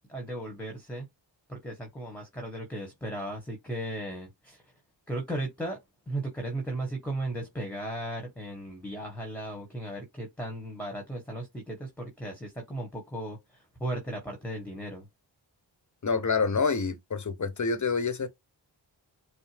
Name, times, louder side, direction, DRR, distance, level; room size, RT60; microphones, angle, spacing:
voice 1, 0.1-1.1 1.5-4.6 5.1-5.8 6.1-15.1, right 1 dB, 5° left, 1.4 m, -36 dB
voice 2, 16.0-18.3, left 4 dB, 40° left, 0.9 m, -27 dB
5.5 x 2.0 x 3.3 m
cardioid pair, 60°, 45 cm